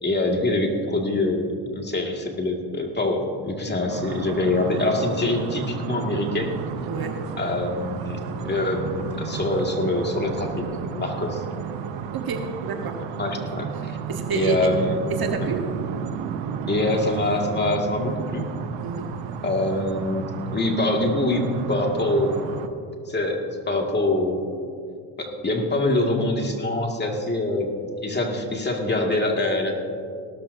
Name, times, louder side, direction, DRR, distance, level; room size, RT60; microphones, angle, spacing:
voice 1, 0.0-6.6 7.4-11.4 13.2-14.0 14.3-15.0 15.4-15.5 16.7-18.5 19.4-20.3 20.5-21.4 21.7-22.6 23.1-24.4 25.2-29.8, left 2 dB, 20° left, 1 dB, 2.1 m, -24 dB
sound 1, 3.9-22.7, right 7 dB, 75° right, 0.9 m, -32 dB
voice 2, 6.9-7.2 12.1-13.0 13.4-13.5 14.1-14.6 15.1-15.6 18.8-19.1, right 6 dB, 50° right, 4 dB, 1.4 m, -29 dB
18.0 x 13.0 x 2.7 m, 2.3 s
supercardioid pair, 80°, 45 cm